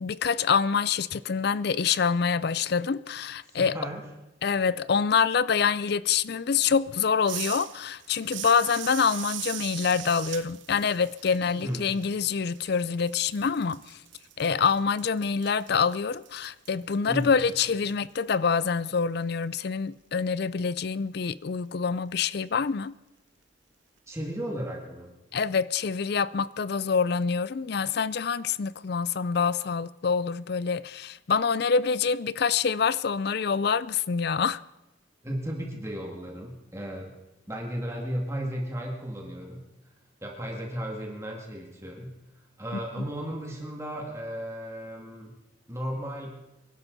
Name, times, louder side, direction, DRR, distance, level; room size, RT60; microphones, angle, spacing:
voice 1, 0.0-3.8 4.4-14.0 14.4-22.9 25.3-34.6 43.0-43.1, left 6 dB, 50° left, 0.4 m, -26 dB
voice 2, 3.5-4.0 11.4-11.9 17.1-17.3 24.1-25.1 35.2-37.1 37.5-39.6 40.2-42.1 42.6-45.3 45.7-46.3, equal, 15° right, 2.2 m, -35 dB
sound 1, 7.3-12.8 13.1-17.9, right 13 dB, 65° right, 0.7 m, -40 dB
25.0 x 12.0 x 4.0 m
head